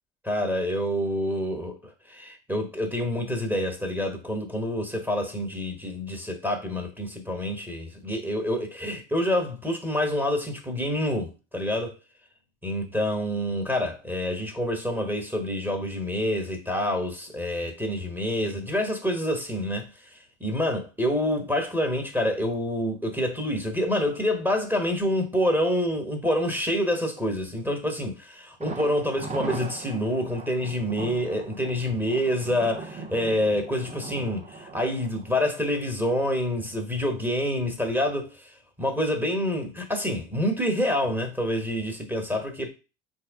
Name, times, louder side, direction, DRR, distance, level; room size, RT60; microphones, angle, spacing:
voice 1, 0.2-11.9 12.6-42.7, left 1 dB, 5° right, 1.4 m, -27 dB
Thunder, 28.6-36.4 36.7-36.8 37.2-37.3, right 4 dB, 20° right, 0.8 m, -40 dB
4.2 x 2.8 x 3.7 m
figure-of-eight pair, 60°, 32 cm